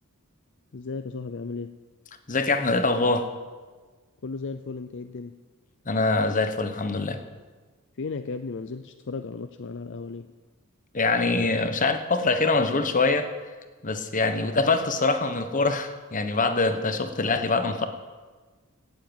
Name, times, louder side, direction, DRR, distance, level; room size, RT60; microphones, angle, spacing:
voice 1, 0.7-1.8 4.2-5.4 8.0-10.3, left 4 dB, 60° left, 9 dB, 0.6 m, -35 dB
voice 2, 2.3-3.3 5.9-7.2 10.9-13.3 13.8-17.9, left 3 dB, 40° left, 8 dB, 1.2 m, -24 dB
17.0 x 7.7 x 8.9 m, 1.4 s
head